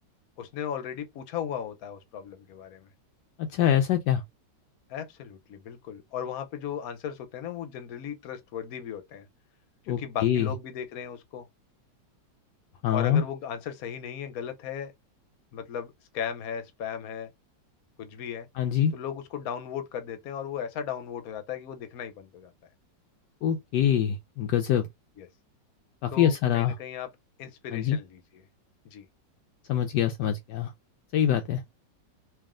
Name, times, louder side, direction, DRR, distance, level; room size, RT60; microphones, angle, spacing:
voice 1, 0.4-2.9 4.9-9.3 9.8-11.5 12.9-14.9 15.5-17.3 18.0-18.5 18.9-22.5 25.2-25.3 26.1-27.1 27.4-28.4 28.8-29.1, left 8 dB, 60° left, 1.2 m, -36 dB
voice 2, 3.4-4.2 9.9-10.5 12.8-13.2 18.6-18.9 23.4-24.9 26.0-26.7 27.7-28.0 29.7-30.7 31.1-31.6, left 10 dB, 75° left, 1.2 m, -24 dB
3.4 x 2.8 x 3.6 m
omnidirectional pair, 2.0 m